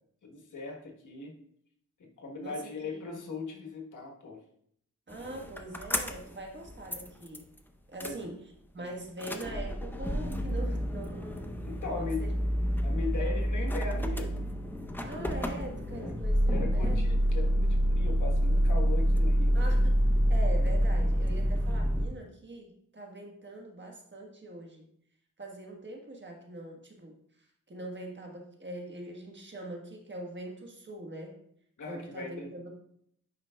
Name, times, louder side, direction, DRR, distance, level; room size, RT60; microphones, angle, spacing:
voice 1, 0.2-1.4 2.0-4.4 8.0-8.2 8.8-8.9 11.6-12.2 12.8-14.5 15.9-16.1 16.5-19.6 31.8-32.5, left 4 dB, 75° left, 1 dB, 1.3 m, -39 dB
voice 2, 2.4-3.2 5.1-7.5 7.9-8.4 8.7-11.5 11.9-12.3 13.2-13.7 15.0-17.2 19.5-20.0 20.3-24.9 25.4-31.4 31.9-32.7, right 1 dB, 35° right, 1 dB, 1.3 m, -43 dB
sound 1, 5.1-6.4 6.7-7.6 8.0-8.1 9.1-22.1, equal, 5° left, 0.6 m, -28 dB
9.3 x 5.0 x 2.3 m, 0.69 s
cardioid pair, 75°, 31 cm